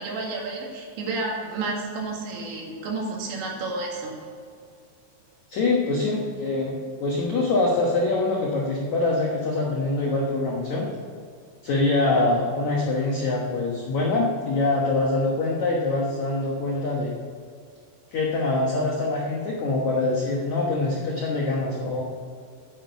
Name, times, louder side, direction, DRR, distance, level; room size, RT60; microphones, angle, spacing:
voice 1, 0.0-4.1, right 3 dB, 70° right, -2 dB, 4.3 m, -31 dB
voice 2, 5.5-6.7 7.0-10.9 11.6-17.1 18.1-22.0, left 2 dB, 90° left, -2 dB, 1.6 m, -24 dB
9.8 x 8.9 x 6.9 m, 2.2 s
omnidirectional pair, 5.4 m